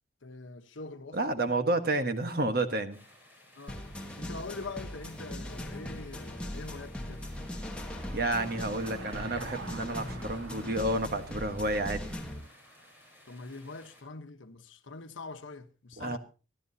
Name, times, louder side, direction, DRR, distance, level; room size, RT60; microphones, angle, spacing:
voice 1, 0.2-1.6 3.6-7.2 13.2-16.2, left 3 dB, 80° left, 1.1 m, -44 dB
voice 2, 1.1-3.0 8.1-12.2 16.0-16.2, right 2 dB, 50° right, 1.4 m, -30 dB
sound 1, 2.9-14.0, left 1 dB, 10° right, 4.2 m, -58 dB
sound 2, 3.7-12.4, left 1 dB, 5° left, 1.7 m, -40 dB
Car passing by / Engine, 6.3-12.9, right 3 dB, 90° right, 1.8 m, -48 dB
25.0 x 12.0 x 2.8 m
head